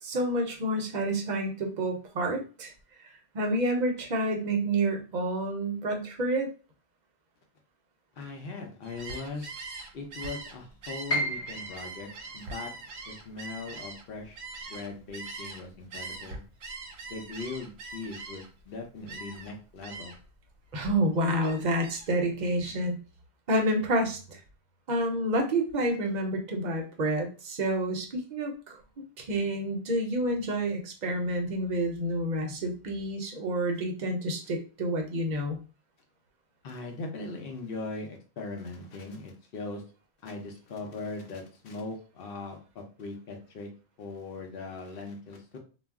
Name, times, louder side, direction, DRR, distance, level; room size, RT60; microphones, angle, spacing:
voice 1, 0.0-2.7 3.0-6.5 20.7-23.0 23.5-24.4 24.9-28.8 29.2-35.6, right 1 dB, 50° right, 2 dB, 0.6 m, -29 dB
voice 2, 8.2-9.6 9.9-12.7 13.1-14.4 14.7-16.4 17.1-20.1 36.6-39.8 40.2-43.7 44.0-45.6, left 3 dB, 65° left, 2 dB, 0.8 m, -40 dB
Gull seagull, 8.8-15.6 15.9-18.6 19.1-19.5 19.8-20.3 20.7-22.1, right 3 dB, 80° right, 0.9 m, -42 dB
Piano, 11.1-17.0 17.4-18.5 18.9-19.0 19.7-20.1, equal, 35° left, 1.0 m, -38 dB
2.3 x 2.0 x 3.4 m, 0.35 s
omnidirectional pair, 1.1 m